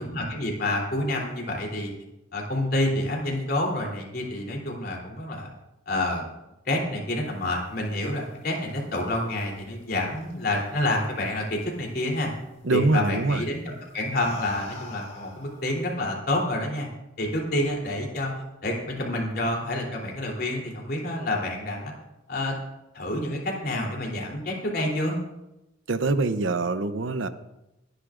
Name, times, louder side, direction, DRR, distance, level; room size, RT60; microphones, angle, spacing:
voice 1, 0.0-1.9 2.3-5.5 5.9-6.2 6.6-12.3 12.7-16.9 17.2-18.3 18.6-21.9 22.3-22.5 22.9-25.2, left 1 dB, 55° left, 0 dB, 3.3 m, -28 dB
sound 1, 8.1-10.9 11.3-11.7 13.0-13.2 13.8-15.9, left 2 dB, 30° left, 2.2 m, -43 dB
voice 2, 12.6-13.4 25.9-27.3, right 3 dB, 75° right, 11 dB, 0.7 m, -24 dB
22.5 x 11.0 x 2.6 m, 0.94 s
head